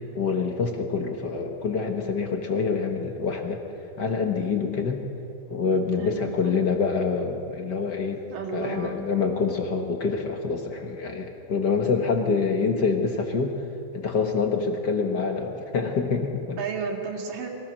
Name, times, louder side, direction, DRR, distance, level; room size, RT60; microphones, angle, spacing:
voice 1, 0.1-3.6 4.0-5.1 5.5-8.2 8.5-13.6 13.9-16.6, left 5 dB, 60° left, 3 dB, 1.1 m, -26 dB
voice 2, 6.0-6.5 8.3-9.1 16.6-17.5, right 6 dB, 85° right, 2 dB, 3.8 m, -33 dB
24.0 x 17.5 x 6.3 m, 2.6 s
omnidirectional pair, 3.8 m